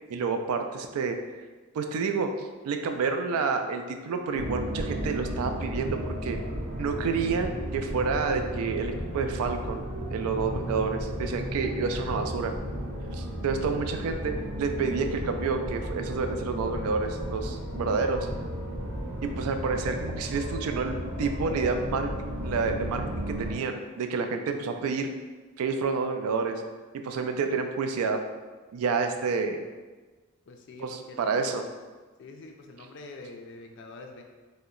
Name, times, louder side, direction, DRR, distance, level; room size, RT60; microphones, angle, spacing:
voice 1, 0.1-1.2 1.7-6.4 6.8-9.8 10.1-12.5 13.1-18.3 19.2-25.1 25.6-26.6 26.9-28.2 28.7-29.6 30.8-31.7, right 4 dB, 80° right, 6 dB, 0.3 m, -29 dB
sound 1, 4.3-23.5, equal, 65° right, 0.7 m, -34 dB
voice 2, 30.5-31.7 32.2-34.2, left 2 dB, 50° left, 3 dB, 0.3 m, -46 dB
2.8 x 2.1 x 3.7 m, 1.3 s
head